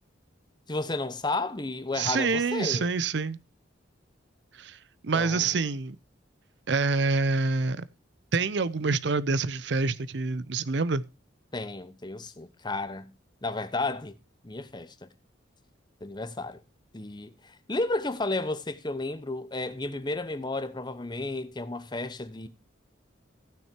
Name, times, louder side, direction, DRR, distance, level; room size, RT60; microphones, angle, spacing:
voice 1, 0.7-2.9 5.1-5.5 11.5-13.1 13.4-14.1 14.4-15.1 16.0-16.6 16.9-22.5, left 2 dB, 25° left, 0.9 m, -32 dB
voice 2, 2.0-3.4 4.6-4.8 5.0-6.0 6.7-7.8 8.3-11.0, right 4 dB, 60° right, 0.6 m, -26 dB
15.0 x 6.5 x 4.5 m
head